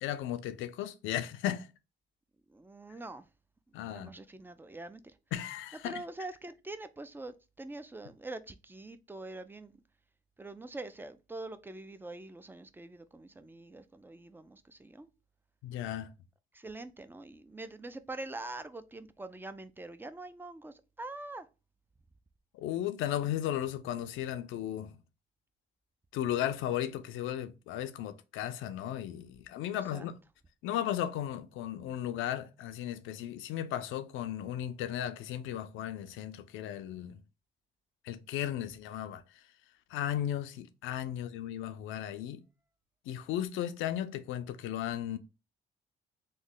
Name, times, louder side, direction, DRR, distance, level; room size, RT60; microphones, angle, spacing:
voice 1, 0.0-1.7 3.7-4.1 5.3-6.0 15.6-16.1 22.5-25.0 26.1-30.1 30.6-37.2 38.0-39.2 39.9-42.4 43.1-45.2, left 11 dB, 90° left, 0.4 m, -35 dB
voice 2, 2.5-3.3 3.9-5.2 5.8-9.7 10.4-15.1 16.5-21.5 29.9-30.1, right 2 dB, 10° right, 0.3 m, -44 dB
3.1 x 2.1 x 3.7 m
cardioid pair, 90°, 20 cm